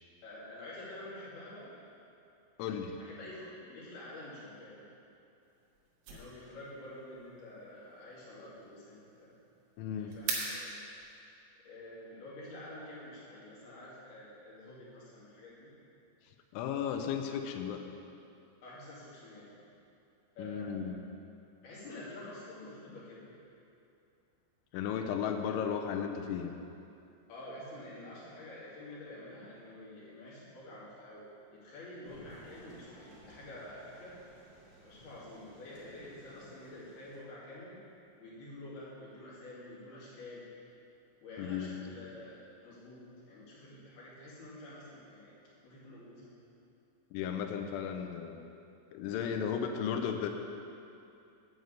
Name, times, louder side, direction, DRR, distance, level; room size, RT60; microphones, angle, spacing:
voice 1, 0.2-1.7 3.0-4.8 6.1-9.3 9.9-10.8 11.7-15.7 18.6-19.5 20.4-21.0 21.6-23.3 27.3-31.3 31.5-34.1 34.8-37.8 38.2-40.5 41.2-45.3 45.6-46.3, left 1 dB, 55° left, -9 dB, 4.0 m, -48 dB
voice 2, 2.6-3.0 9.8-10.2 16.5-17.9 20.4-21.0 24.7-26.5 41.4-41.7 47.1-48.4 48.9-50.3, left 7 dB, 80° left, 5 dB, 2.9 m, -35 dB
sound 1, 5.4-11.2, right 4 dB, 80° right, 3.9 m, -44 dB
sound 2, 32.0-37.2, right 1 dB, 40° right, 2.9 m, -58 dB
9.7 x 5.2 x 8.1 m, 2.6 s
omnidirectional pair, 5.9 m